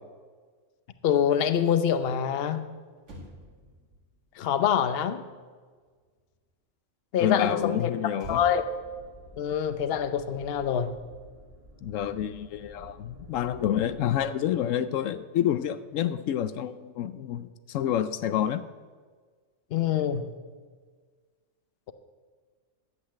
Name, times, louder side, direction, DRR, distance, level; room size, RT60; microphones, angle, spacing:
voice 1, 1.0-2.7 4.4-5.2 7.1-7.9 8.3-8.7 9.4-11.0 19.7-20.3, left 8 dB, 55° left, 11 dB, 0.9 m, -25 dB
Motor vehicle (road), 3.0-6.5 8.1-10.7 11.0-11.3, right 1 dB, 70° right, 2.4 m, -49 dB
voice 2, 7.2-8.4 11.8-18.6, left 10 dB, 80° left, 12 dB, 1.0 m, -28 dB
sound 1, 8.7-14.2, right 1 dB, 50° right, 2.3 m, -51 dB
12.0 x 8.0 x 7.7 m, 1.5 s
omnidirectional pair, 1.3 m